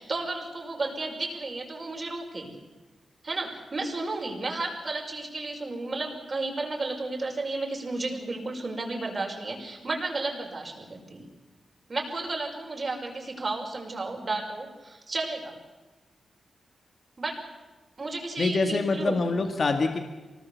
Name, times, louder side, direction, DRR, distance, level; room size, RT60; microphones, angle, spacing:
voice 1, 0.0-2.5 3.2-11.2 11.9-15.6 17.2-17.4 18.0-19.4, right 3 dB, 40° right, 0 dB, 5.5 m, -33 dB
voice 2, 18.4-20.0, left 3 dB, 55° left, 5 dB, 1.9 m, -25 dB
24.5 x 19.5 x 7.1 m, 1.2 s
cardioid pair, 75°, 0 cm